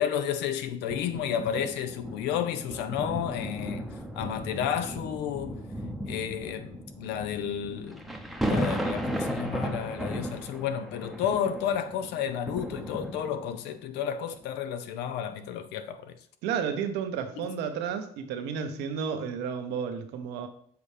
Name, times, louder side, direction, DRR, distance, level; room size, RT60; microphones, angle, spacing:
voice 1, 0.0-5.6 6.1-8.0 8.4-16.2 17.4-17.5, left 9 dB, 90° left, 0.7 m, -32 dB
sound 1, 0.8-13.6 14.3-14.5, equal, ahead, 0.7 m, -35 dB
voice 2, 16.4-20.5, right 7 dB, 85° right, 0.9 m, -32 dB
7.0 x 4.2 x 3.3 m
cardioid pair, 110°, 17 cm